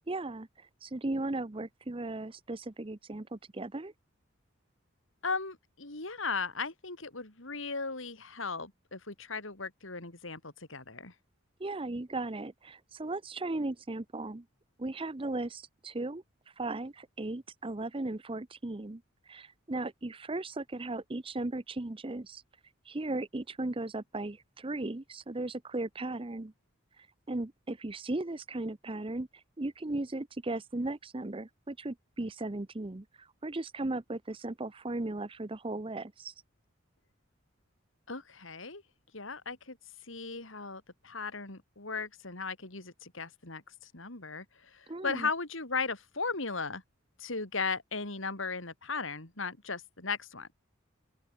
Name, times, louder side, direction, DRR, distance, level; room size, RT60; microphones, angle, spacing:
voice 1, 0.1-3.9 11.6-14.4 14.8-16.2 16.6-22.4 22.9-26.5 27.3-29.3 29.6-36.3 44.9-45.3, right 2 dB, 25° right, 0.7 m, -37 dB
voice 2, 5.2-11.1 38.1-38.8 39.1-39.8 40.0-46.8 47.2-50.5, left 4 dB, 70° left, 3.7 m, -37 dB
open air
head